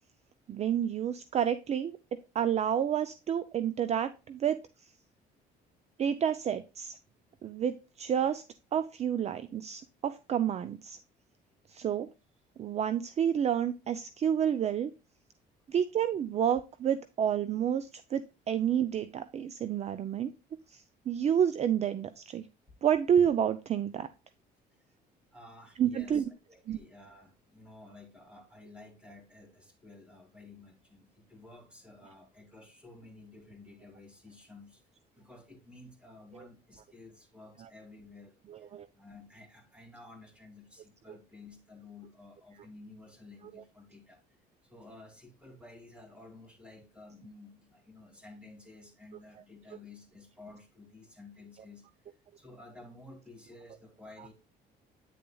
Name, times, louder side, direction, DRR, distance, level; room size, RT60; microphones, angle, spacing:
voice 1, 0.5-2.0 2.3-4.6 6.0-7.0 7.4-8.4 8.7-11.0 11.7-12.1 12.6-14.9 15.7-20.3 20.7-22.4 22.8-24.1 25.8-26.2 26.7-26.8 36.3-36.5 38.5-38.9, right 9 dB, 40° right, 0.5 m, -29 dB
voice 2, 25.3-34.8 35.2-44.2 44.6-51.9 52.3-54.3, left 2 dB, 5° right, 2.7 m, -53 dB
9.2 x 6.8 x 2.3 m
cardioid pair, 110°, 17 cm